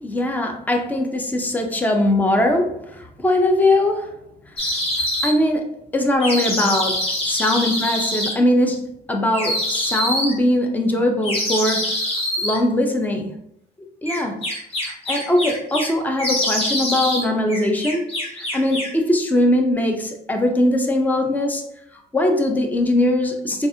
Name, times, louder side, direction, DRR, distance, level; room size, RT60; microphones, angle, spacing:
voice 1, 0.0-4.2 5.2-5.7 5.9-11.9 12.4-13.3 14.0-14.4 14.9-21.6 22.1-23.7, left 1 dB, 10° left, 3 dB, 0.5 m, -21 dB
sound 1, 4.6-5.3 6.2-8.3 9.3-10.3 11.2-12.6 14.1-15.9 16.2-17.2 17.5-19.0, left 1 dB, 35° left, 1.2 m, -24 dB
4.0 x 2.4 x 2.7 m, 0.77 s
cardioid pair, 110°, 17 cm